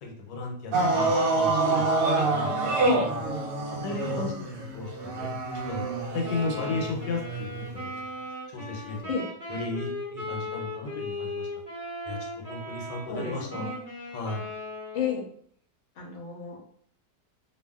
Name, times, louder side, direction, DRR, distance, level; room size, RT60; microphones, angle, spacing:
voice 1, 0.0-1.9 2.2-2.9 3.7-5.3 5.7-7.9 8.5-9.1 9.5-11.5 12.1-13.7 14.1-14.5, left 3 dB, 90° left, 1 dB, 1.3 m, -35 dB
sound 1, 0.7-7.9 8.9-9.0, right 3 dB, 70° right, 0.9 m, -27 dB
Wind instrument woodwind instrument, 6.2-15.3, left 2 dB, 35° right, 0.6 m, -37 dB
voice 2, 13.1-13.8 14.9-15.2 16.0-16.6, left 6 dB, 60° left, -2 dB, 0.9 m, -31 dB
2.7 x 2.6 x 2.2 m, 0.62 s
omnidirectional pair, 1.8 m